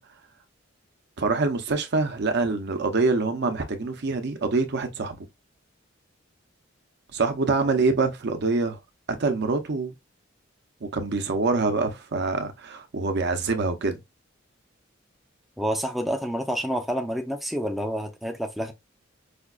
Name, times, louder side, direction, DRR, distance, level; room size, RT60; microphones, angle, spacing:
voice 1, 1.2-5.2 7.1-8.8 9.1-9.9 10.8-14.0, right 3 dB, 60° right, 0.6 m, -25 dB
voice 2, 15.6-18.7, equal, ahead, 0.4 m, -28 dB
4.9 x 2.2 x 2.3 m
head